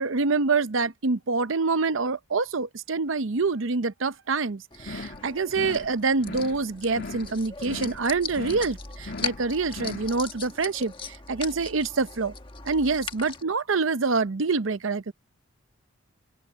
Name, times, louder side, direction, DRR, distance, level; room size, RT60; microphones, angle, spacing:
voice 1, 0.0-12.3 12.7-15.1, right 4 dB, 70° right, 0.7 m, -26 dB
sound 1, 4.7-13.4, left 5 dB, 25° left, 1.5 m, -39 dB
sound 2, 4.8-5.2 5.5-5.9 6.2-6.6 6.9-7.3 7.6-8.0 8.3-8.7 9.0-9.4 9.7-10.1, left 3 dB, 55° left, 2.6 m, -38 dB
open air
head